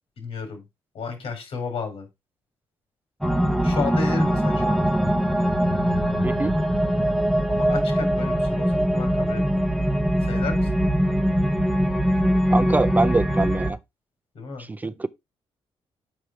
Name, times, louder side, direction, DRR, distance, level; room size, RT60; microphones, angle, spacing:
voice 1, 0.2-0.6 0.9-2.1 3.6-5.2 7.5-9.7 10.2-10.7 14.3-14.7, left 4 dB, 75° left, 3.9 m, -32 dB
sound 1, 3.2-13.7, equal, ahead, 0.9 m, -22 dB
voice 2, 6.2-6.5 12.5-13.8 14.6-15.1, right 3 dB, 15° right, 0.4 m, -24 dB
6.2 x 5.3 x 4.5 m
cardioid pair, 115°, 10 cm